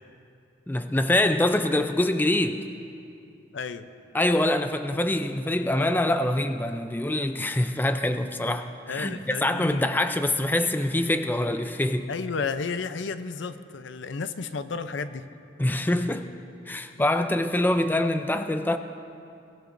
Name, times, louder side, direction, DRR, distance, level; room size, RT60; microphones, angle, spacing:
voice 1, 0.7-2.6 4.1-12.1 15.6-16.3 16.7-18.8, left 1 dB, 10° left, 8 dB, 0.4 m, -25 dB
voice 2, 3.5-3.9 8.9-9.9 12.1-15.3 17.0-17.1, left 4 dB, 75° left, 11 dB, 0.6 m, -32 dB
22.5 x 17.0 x 2.6 m, 2.6 s
head